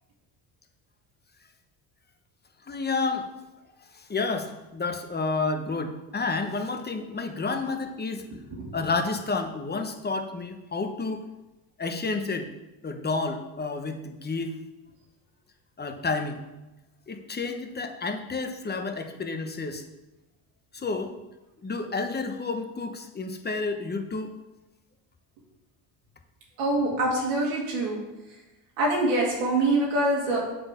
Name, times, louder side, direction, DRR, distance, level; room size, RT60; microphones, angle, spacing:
voice 1, 2.7-3.3 3.9-8.2 8.7-11.2 11.8-12.5 12.8-14.6 15.8-16.4 17.1-19.8 20.7-21.1 21.6-24.4, left 3 dB, 20° left, 6 dB, 1.1 m, -30 dB
voice 2, 26.6-28.0 28.8-30.4, right 2 dB, 85° right, -3 dB, 2.5 m, -25 dB
7.9 x 4.1 x 6.6 m, 1.0 s
supercardioid pair, 80°, 45 cm